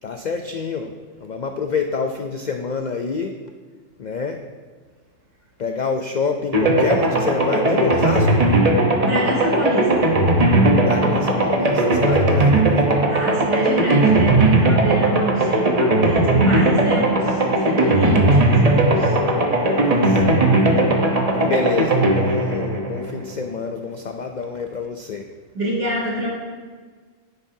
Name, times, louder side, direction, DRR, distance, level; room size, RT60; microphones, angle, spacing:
voice 1, 0.0-3.4 4.0-4.5 5.6-8.4 10.8-13.0 19.8-20.7 21.1-25.3, left 5 dB, 90° left, 5 dB, 0.4 m, -27 dB
sound 1, 6.5-23.5, right 2 dB, 30° right, 0.9 m, -18 dB
voice 2, 9.0-10.9 13.1-19.1 25.5-26.3, right 1 dB, 75° right, -6 dB, 3.6 m, -26 dB
10.5 x 9.2 x 2.7 m, 1.5 s
omnidirectional pair, 1.4 m